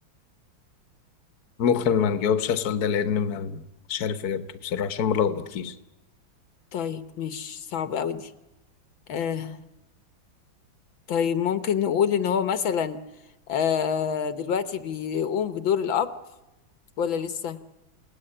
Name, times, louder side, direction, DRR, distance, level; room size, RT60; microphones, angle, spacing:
voice 1, 1.6-3.6 3.9-5.7, left 7 dB, 55° left, 1.6 m, -25 dB
voice 2, 6.7-8.3 9.1-9.6 11.1-13.0 13.5-16.2 17.0-17.6, left 8 dB, 70° left, 1.9 m, -26 dB
29.0 x 18.0 x 10.0 m
omnidirectional pair, 2.2 m